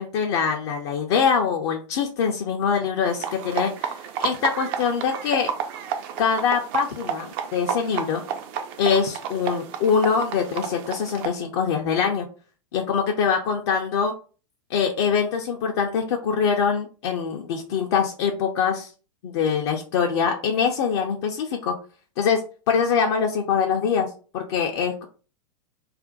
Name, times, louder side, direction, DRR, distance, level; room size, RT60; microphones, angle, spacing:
voice 1, 0.0-5.5 6.2-8.2 8.8-12.3 12.7-14.1 14.7-18.9 19.2-21.7 22.2-24.1 24.3-25.0, left 6 dB, 50° left, 2 dB, 0.5 m, -23 dB
sound 1, 3.1-11.3, right 8 dB, 45° right, 0.4 m, -31 dB
2.5 x 2.1 x 3.6 m, 0.37 s
figure-of-eight pair, 95°, 17 cm